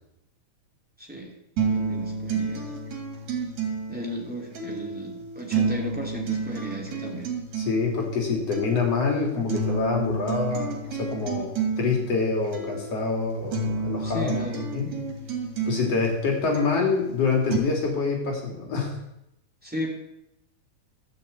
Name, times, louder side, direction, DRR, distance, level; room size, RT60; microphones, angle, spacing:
voice 1, 1.0-1.4 1.7-2.7 3.9-7.3 14.0-14.6 19.6-19.9, equal, 5° right, -3 dB, 2.3 m, -35 dB
sound 1, 1.6-17.6, right 4 dB, 60° right, 3.4 m, -31 dB
voice 2, 7.6-14.9 15.7-18.9, left 4 dB, 50° left, 0 dB, 3.5 m, -26 dB
12.5 x 6.7 x 8.1 m, 0.83 s
omnidirectional pair, 3.7 m